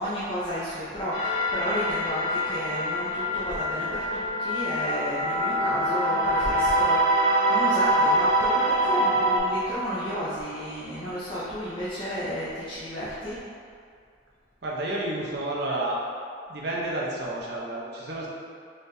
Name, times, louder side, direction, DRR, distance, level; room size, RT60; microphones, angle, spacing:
voice 1, 0.0-13.4, equal, 25° left, -10 dB, 0.5 m, -32 dB
sound 1, 1.1-9.4, right 1 dB, 65° left, 0.8 m, -24 dB
voice 2, 14.6-16.0 16.5-18.3, right 1 dB, 55° right, -4 dB, 0.7 m, -30 dB
4.0 x 3.4 x 2.7 m, 2.3 s
head